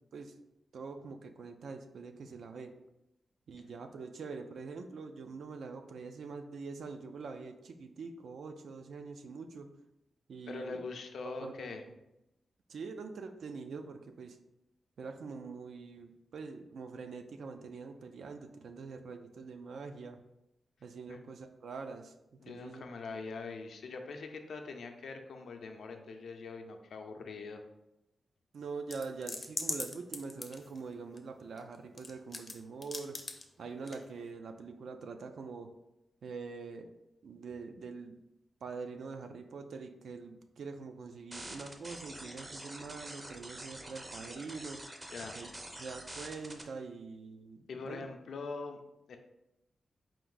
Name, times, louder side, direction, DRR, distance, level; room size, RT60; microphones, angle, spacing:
voice 1, 0.7-2.7 3.5-9.7 10.3-10.8 11.2-11.9 12.7-14.4 15.0-20.2 20.8-22.1 22.5-22.8 28.5-33.2 33.6-35.7 36.2-36.9 37.2-38.2 38.6-44.8 45.3-45.5 45.8-48.0, right 4 dB, 80° right, 7 dB, 0.4 m, -44 dB
voice 2, 10.5-11.8 21.1-21.3 22.4-27.6 45.1-45.4 47.7-48.8 49.1-49.2, left 4 dB, 80° left, 4 dB, 0.5 m, -43 dB
sound 1, 28.9-31.2 31.6-32.5 32.8-33.4 33.9-34.0, left 3 dB, 30° left, 0.5 m, -38 dB
sound 2, 41.3-46.6, right 1 dB, 20° right, 0.5 m, -46 dB
4.5 x 2.6 x 3.8 m, 0.89 s
wide cardioid pair, 140°, 0 cm